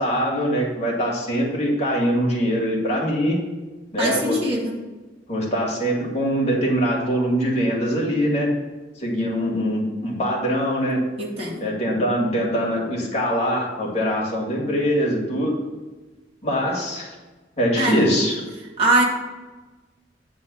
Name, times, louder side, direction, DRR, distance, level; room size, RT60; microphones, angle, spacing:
voice 1, 0.0-3.4 3.9-4.4 5.3-8.5 9.0-11.0 11.6-15.6 16.4-17.1 17.6-18.3, equal, 35° left, -3 dB, 2.1 m, -23 dB
voice 2, 4.0-4.7 11.2-11.7 17.8-18.0 18.8-19.0, right 2 dB, 30° right, -4 dB, 2.1 m, -21 dB
9.0 x 3.8 x 6.9 m, 1.2 s
head